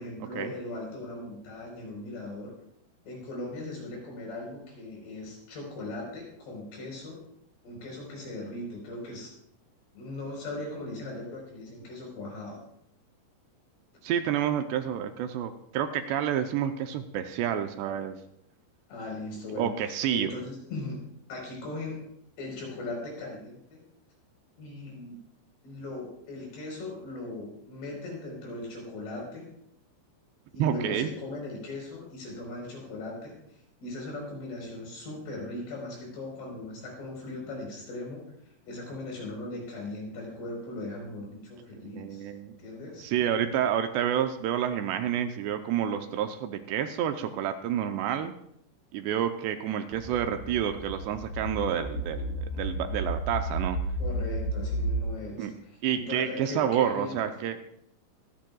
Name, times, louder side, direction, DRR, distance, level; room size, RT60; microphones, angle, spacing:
voice 1, 0.0-2.5 3.1-7.2 7.6-9.3 9.9-12.6 18.9-19.7 20.1-21.0 21.3-22.0 22.4-23.8 24.6-25.2 25.6-29.5 30.5-33.4 33.8-38.2 38.7-42.3 42.6-43.1 54.0-55.5 55.9-57.2, left 2 dB, 65° left, -1 dB, 6.2 m, -38 dB
voice 2, 14.0-18.2 19.6-20.3 30.6-31.1 41.9-42.5 43.0-48.3 48.9-53.8 55.4-55.5 55.8-57.6, right 9 dB, 80° right, 7 dB, 2.7 m, -29 dB
sound 1, 49.9-55.0, right 1 dB, 80° left, 6.7 m, -32 dB
24.0 x 10.5 x 2.3 m, 0.73 s
omnidirectional pair, 5.1 m